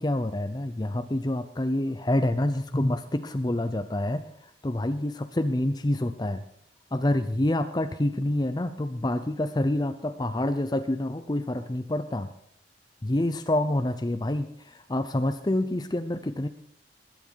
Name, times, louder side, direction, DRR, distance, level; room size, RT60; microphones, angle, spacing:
voice 1, 0.0-6.4 6.9-12.3 13.0-16.5, left 1 dB, 20° left, 9 dB, 0.6 m, -27 dB
21.0 x 9.5 x 4.6 m, 0.68 s
head